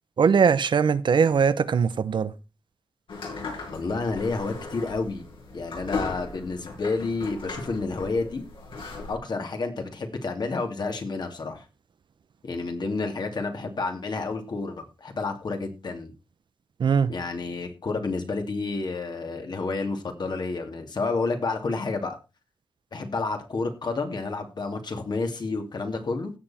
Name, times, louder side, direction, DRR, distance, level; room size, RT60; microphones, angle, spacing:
voice 1, 0.2-2.3 16.8-17.1, right 6 dB, 65° right, 0.9 m, -21 dB
sound 1, 3.1-9.1, left 3 dB, 75° left, 7.5 m, -37 dB
voice 2, 3.7-5.3 5.5-8.4 9.1-11.6 12.4-16.1 17.1-22.2 22.9-26.3, left 3 dB, 55° left, 2.7 m, -30 dB
16.5 x 6.8 x 4.3 m
cardioid pair, 75°, 9 cm